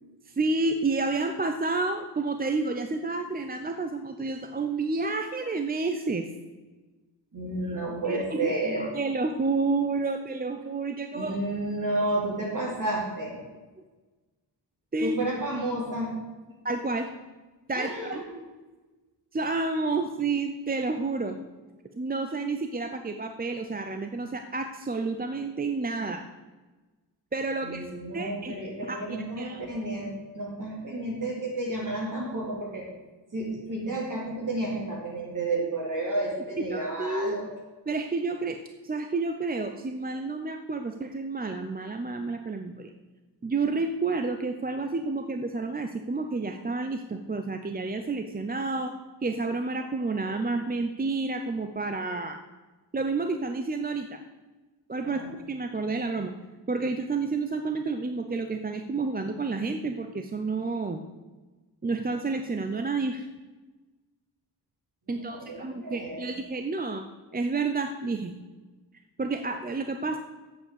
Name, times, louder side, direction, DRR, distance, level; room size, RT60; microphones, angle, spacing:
voice 1, 0.3-6.3 8.1-8.5 8.8-11.4 14.9-15.1 16.6-17.1 17.7-18.2 19.3-21.4 22.0-26.2 27.3-27.8 28.1-28.6 28.9-29.0 29.4-29.7 36.7-37.4 37.9-42.9 43.4-48.9 49.2-52.4 52.9-54.2 54.9-55.2 55.5-56.3 56.7-61.0 61.8-63.3 65.1-67.0 67.3-68.3 69.2-70.2, right 3 dB, 20° right, 6 dB, 0.6 m, -30 dB
voice 2, 7.3-8.8 11.1-13.4 15.0-16.1 17.7-18.4 27.6-32.9 33.3-37.5 55.0-55.3 65.1-66.3, right 1 dB, 45° right, -2 dB, 4.0 m, -31 dB
8.3 x 7.3 x 8.1 m, 1.2 s
wide cardioid pair, 105°, 43 cm